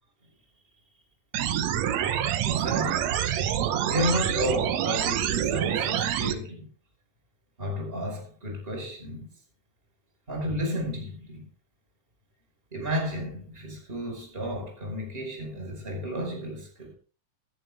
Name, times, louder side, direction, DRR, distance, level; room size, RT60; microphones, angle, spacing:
sound 1, 1.3-6.3, right 10 dB, 65° right, 2.0 m, -26 dB
voice 1, 2.4-3.1 3.9-6.7 7.6-9.3 10.3-11.5 12.7-16.9, equal, 15° right, 4.9 m, -32 dB
17.5 x 11.0 x 3.5 m
omnidirectional pair, 3.8 m